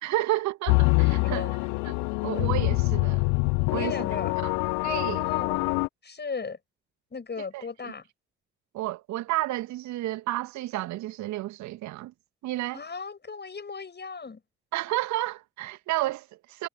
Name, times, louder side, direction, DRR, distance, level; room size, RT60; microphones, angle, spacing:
voice 1, 0.0-1.5 1.8-2.0 2.2-3.3 3.7-4.0 4.4-4.5 4.8-5.3 7.5-7.6 8.7-12.1 12.4-12.8 14.7-16.7, right 16 dB, 60° right, 2.1 m, -31 dB
sound 1, 0.7-5.9, left 32 dB, 70° left, 1.2 m, -25 dB
voice 2, 1.2-1.5 3.7-4.3 5.2-5.7 6.0-6.6 7.1-8.0 12.7-14.4, left 5 dB, 35° left, 7.4 m, -36 dB
figure-of-eight pair, 40°, 31 cm